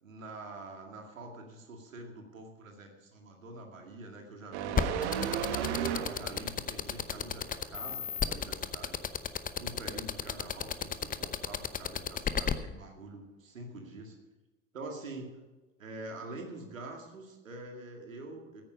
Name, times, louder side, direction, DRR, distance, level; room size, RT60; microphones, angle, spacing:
voice 1, 0.0-5.2 5.5-9.0 9.5-14.2 14.7-15.4 15.8-18.6, right 2 dB, 85° right, 2 dB, 2.2 m, -45 dB
sound 1, 4.5-6.6 7.0-7.2, right 9 dB, 65° right, 1.2 m, -34 dB
sound 2, 4.8-12.5, left 7 dB, 20° left, 0.8 m, -31 dB
15.0 x 9.0 x 5.1 m, 1.2 s
figure-of-eight pair, 75°, 39 cm